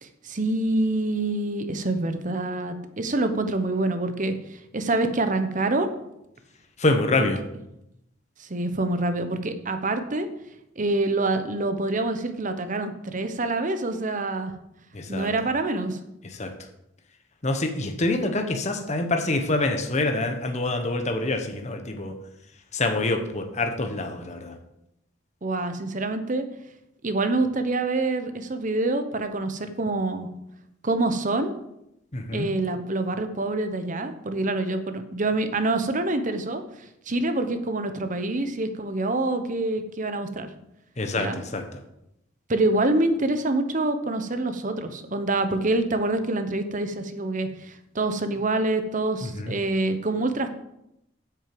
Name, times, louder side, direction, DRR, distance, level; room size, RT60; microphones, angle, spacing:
voice 1, 0.0-5.9 7.2-7.3 8.4-10.3 10.8-14.5 15.1-16.0 25.4-26.4 27.0-30.3 30.8-31.6 32.3-36.6 37.1-40.5 41.2-41.4 42.5-50.5, right 2 dB, 45° right, 8 dB, 1.0 m, -26 dB
voice 2, 6.8-7.4 14.9-15.3 16.4-16.5 17.4-22.1 22.7-24.6 32.1-32.5 41.0-41.6 49.4-49.5, left 2 dB, 40° left, 5 dB, 1.2 m, -26 dB
8.6 x 6.4 x 7.7 m, 0.83 s
head